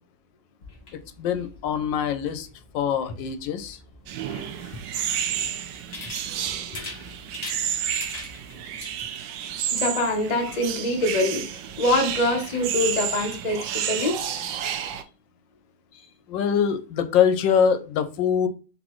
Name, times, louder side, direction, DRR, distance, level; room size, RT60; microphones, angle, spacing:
sound 1, 0.6-9.0, left 2 dB, 35° left, 1.3 m, -43 dB
voice 1, 1.2-2.5 2.7-3.8 16.3-18.5, left 8 dB, 75° left, 1.2 m, -23 dB
sound 2, 4.1-15.0, right 9 dB, 75° right, 1.1 m, -31 dB
voice 2, 4.3-5.0 6.7-6.8 9.7-14.2, left 1 dB, 55° left, 0.4 m, -25 dB
4.1 x 3.8 x 3.0 m
omnidirectional pair, 2.1 m